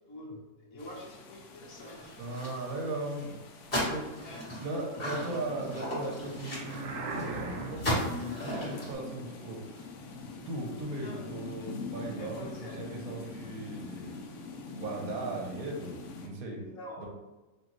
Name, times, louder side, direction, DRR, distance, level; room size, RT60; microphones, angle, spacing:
voice 1, 0.1-2.2 4.2-4.5 8.9-9.2 10.9-11.3 12.2-13.0 16.6-17.1, left 1 dB, 55° left, -3 dB, 1.4 m, -47 dB
sound 1, 0.8-16.3, left 3 dB, 85° left, 0.6 m, -44 dB
sound 2, 1.8-2.8 3.1-3.3 3.6-7.3 7.8-8.9, equal, 30° left, 1.5 m, -35 dB
voice 2, 2.2-3.4 3.7-9.9 10.2-14.2 14.8-16.6 17.0-17.1, right 2 dB, 65° right, 0 dB, 1.1 m, -38 dB
sound 3, 6.5-8.1, right 3 dB, 80° right, 0.6 m, -38 dB
4.3 x 2.7 x 3.0 m, 1.1 s
omnidirectional pair, 1.9 m